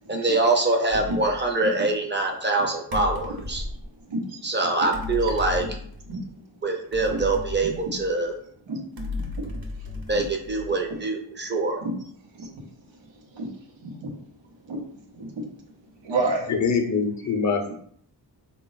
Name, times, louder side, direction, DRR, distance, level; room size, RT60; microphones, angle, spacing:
voice 1, 0.1-3.6 4.4-5.6 6.6-8.3 10.1-11.8, right 2 dB, 25° right, 2 dB, 0.6 m, -24 dB
sound 1, 0.9-1.4 2.9-3.9 4.9-6.2 6.9-8.3 9.0-10.9, left 3 dB, 55° right, 0.9 m, -34 dB
voice 2, 3.7-4.7 5.2-5.7 6.1-6.5 7.1-7.2 7.6-7.9 8.7-8.8 9.1-10.2 10.6-11.0 11.8-12.0 12.2-14.2 14.6-16.5 17.7-17.8, right 2 dB, 90° right, 0 dB, 0.8 m, -33 dB
voice 3, 16.5-17.8, left 5 dB, 40° left, 4 dB, 0.6 m, -24 dB
3.9 x 2.3 x 3.9 m, 0.63 s
wide cardioid pair, 120°, 44 cm